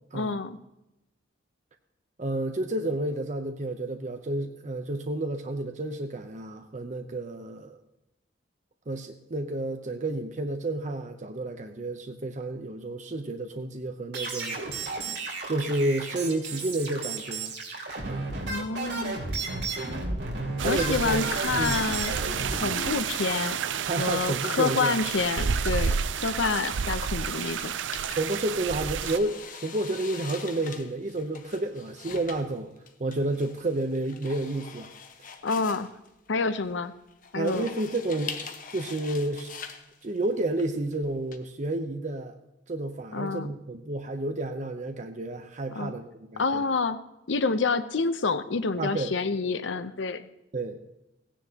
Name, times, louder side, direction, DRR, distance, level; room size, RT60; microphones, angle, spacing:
voice 1, 0.1-0.6 18.5-19.2 20.6-22.1 22.5-23.6 24.0-27.7 35.4-35.9 36.3-36.9 37.3-37.7 43.1-43.5 45.7-45.9 46.4-47.0 47.3-50.3, left 4 dB, 80° left, 11 dB, 0.7 m, -28 dB
voice 2, 2.2-7.8 8.9-14.9 15.5-17.5 18.0-18.3 19.8-20.1 20.6-21.8 23.9-24.9 28.2-32.7 33.0-34.9 35.2-35.3 37.3-39.5 40.0-42.3 42.7-46.6 48.8-49.1 50.5-50.8, right 2 dB, 40° right, 6 dB, 0.7 m, -31 dB
sound 1, 14.1-22.9, right 3 dB, 65° right, 2.9 m, -33 dB
sound 2, 20.6-29.2, right 6 dB, 85° right, 0.5 m, -30 dB
sound 3, 26.8-41.4, left 6 dB, 45° left, 1.1 m, -44 dB
16.5 x 10.0 x 2.9 m, 0.90 s
head